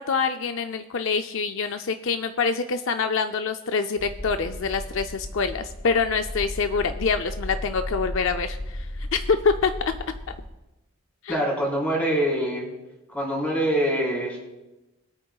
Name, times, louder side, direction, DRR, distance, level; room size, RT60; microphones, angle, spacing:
voice 1, 0.0-8.9 9.1-10.0 11.2-11.4, left 5 dB, 60° left, 8 dB, 0.4 m, -25 dB
sound 1, 4.0-10.5, left 1 dB, 85° left, 4.0 m, -35 dB
voice 2, 11.3-12.7 13.1-14.4, right 1 dB, 5° left, -4 dB, 4.0 m, -24 dB
21.5 x 8.8 x 2.3 m, 1.0 s
head